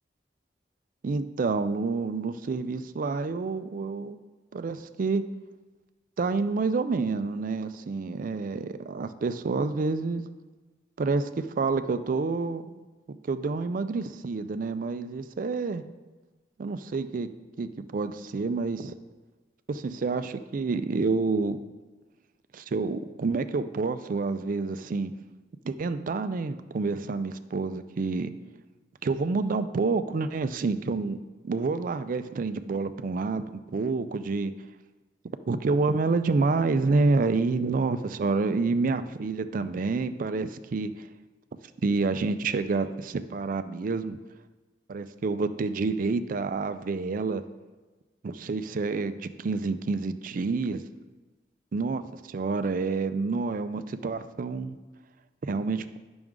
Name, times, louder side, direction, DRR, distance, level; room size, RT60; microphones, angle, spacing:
voice 1, 1.0-4.2 4.5-5.2 6.2-10.2 11.0-12.9 13.2-15.8 16.6-17.3 17.6-18.9 19.7-21.6 22.5-25.1 25.6-28.3 29.0-31.2 31.4-34.5 35.5-41.1 41.8-44.2 44.9-47.4 48.2-50.8 51.7-54.8 55.4-56.0, right 4 dB, 50° right, 11 dB, 0.4 m, -28 dB
9.1 x 6.0 x 3.7 m, 1.2 s
head